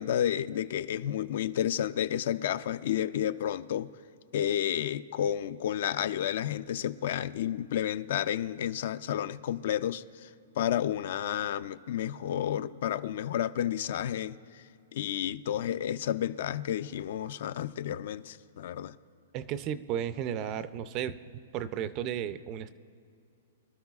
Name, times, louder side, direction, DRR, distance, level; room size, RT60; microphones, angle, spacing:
voice 1, 0.0-3.9 4.3-10.3 10.6-14.6 14.9-18.9, left 10 dB, 50° left, 16 dB, 0.3 m, -31 dB
voice 2, 19.3-21.2 21.5-22.7, right 9 dB, 25° right, 13 dB, 0.4 m, -34 dB
24.0 x 13.0 x 2.4 m, 2.5 s
hypercardioid pair, 175°, 0 cm